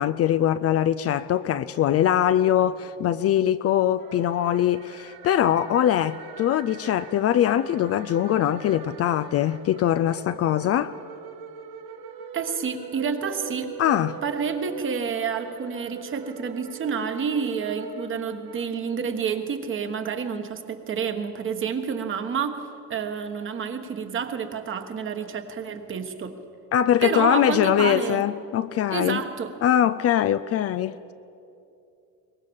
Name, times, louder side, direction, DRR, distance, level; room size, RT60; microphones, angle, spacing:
voice 1, 0.0-10.9 13.8-14.2 26.7-29.2 29.6-30.9, left 11 dB, 45° left, 0.5 m, -22 dB
sound 1, 4.0-19.3, right 6 dB, 90° right, 2.1 m, -42 dB
voice 2, 12.3-13.7 14.2-26.4 27.0-28.2 28.9-29.5, right 6 dB, 35° right, 1.5 m, -29 dB
23.0 x 20.0 x 7.1 m
cardioid pair, 160°, 36 cm